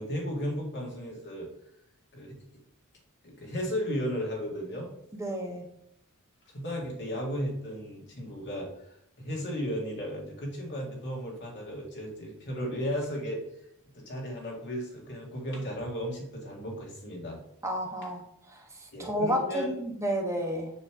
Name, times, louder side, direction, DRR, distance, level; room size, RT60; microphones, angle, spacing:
voice 1, 0.0-1.5 2.1-2.4 3.2-4.9 6.5-8.7 9.2-13.4 13.9-17.4 18.0-18.1 18.9-19.7, equal, 55° left, -1 dB, 2.0 m, -35 dB
voice 2, 5.2-5.7 17.6-18.2 18.5-18.6 19.0-20.7, equal, 15° right, 0 dB, 1.2 m, -30 dB
6.9 x 3.2 x 6.0 m, 0.74 s
head